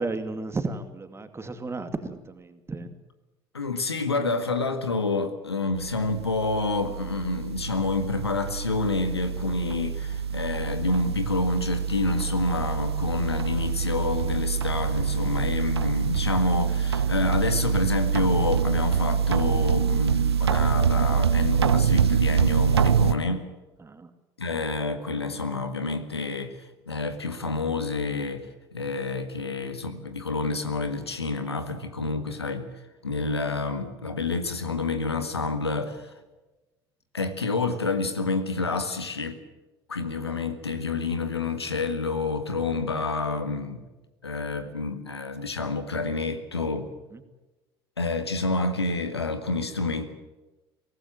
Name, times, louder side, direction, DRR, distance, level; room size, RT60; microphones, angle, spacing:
voice 1, 0.0-2.9 23.8-24.1 47.1-47.2, right 3 dB, 20° right, 2.5 m, -33 dB
voice 2, 3.5-23.5 24.4-28.5 28.7-32.7 33.0-36.1 37.1-39.4 39.9-43.8 44.2-46.9 48.0-50.1, left 3 dB, 85° left, 1.8 m, -28 dB
sound 1, 5.8-23.1, right 7 dB, 80° right, 0.7 m, -25 dB
23.5 x 18.0 x 7.6 m
figure-of-eight pair, 60°, 13 cm